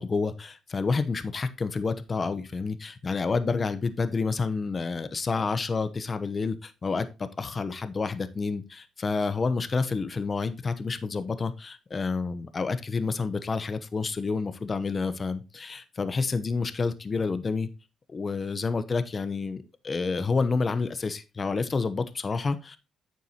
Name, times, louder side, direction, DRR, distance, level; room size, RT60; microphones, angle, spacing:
voice 1, 0.0-17.7 18.1-22.8, left 4 dB, 35° left, 12 dB, 0.9 m, -29 dB
9.2 x 6.8 x 3.0 m, 0.27 s
cardioid pair, 90°, 0 cm